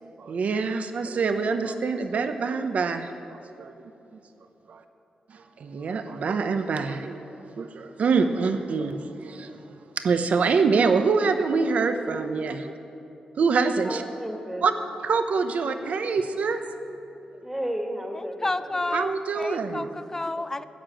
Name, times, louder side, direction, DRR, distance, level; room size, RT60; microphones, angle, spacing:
voice 1, 0.0-3.7 4.7-4.8 5.3-7.2 7.6-9.5 10.0-12.6 13.4-14.0 14.6-14.7 15.0-16.6 18.9-19.9, right 4 dB, 65° right, 8 dB, 0.9 m, -25 dB
voice 2, 13.8-14.7 17.4-18.5 18.8-19.0, equal, 10° right, 2 dB, 1.7 m, -33 dB
voice 3, 18.4-20.6, left 2 dB, 20° left, 13 dB, 0.4 m, -30 dB
14.0 x 9.0 x 7.7 m, 2.9 s
cardioid pair, 105°, 3 cm